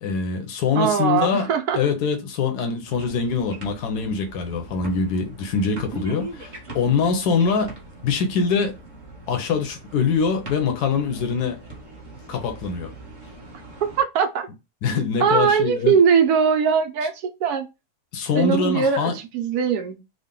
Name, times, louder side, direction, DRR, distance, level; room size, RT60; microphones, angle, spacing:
voice 1, 0.0-1.5 1.7-7.8 8.0-8.8 9.3-11.6 12.3-12.9 14.8-16.0 18.1-19.1, left 5 dB, 80° left, 1.3 m, -23 dB
voice 2, 0.8-1.8 14.0-14.5 15.2-17.1 17.4-17.7 18.3-20.0, right 7 dB, 75° right, 1.2 m, -20 dB
sound 1, 2.9-14.0, right 2 dB, 35° right, 1.0 m, -41 dB
3.8 x 2.2 x 3.7 m
omnidirectional pair, 1.7 m